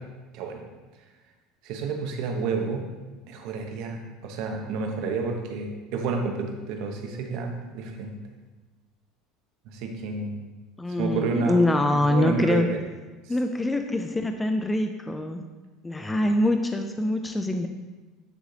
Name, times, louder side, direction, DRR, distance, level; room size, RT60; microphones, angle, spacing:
voice 1, 1.6-2.9 3.3-8.1 9.7-10.4 11.0-11.6 12.1-12.8, right 4 dB, 70° right, 3 dB, 1.0 m, -30 dB
voice 2, 10.8-12.7 13.3-15.4 15.8-17.7, left 1 dB, 10° left, 6 dB, 0.4 m, -24 dB
9.1 x 3.2 x 3.9 m, 1.2 s
supercardioid pair, 120°, 0 cm